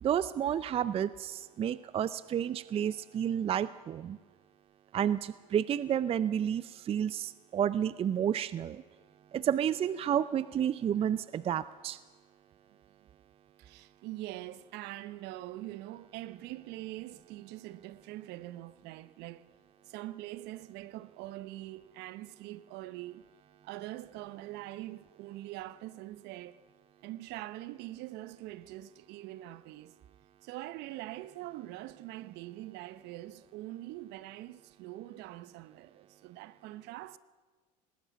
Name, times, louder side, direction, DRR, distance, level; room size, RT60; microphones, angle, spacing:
voice 1, 0.0-4.2 4.9-8.8 9.3-12.0, right 9 dB, 30° right, 0.5 m, -31 dB
voice 2, 13.6-19.5 19.8-23.2 23.6-26.6 27.0-29.9 30.4-37.2, right 16 dB, 60° right, 0.8 m, -43 dB
19.0 x 19.0 x 7.4 m
supercardioid pair, 100°, 20 cm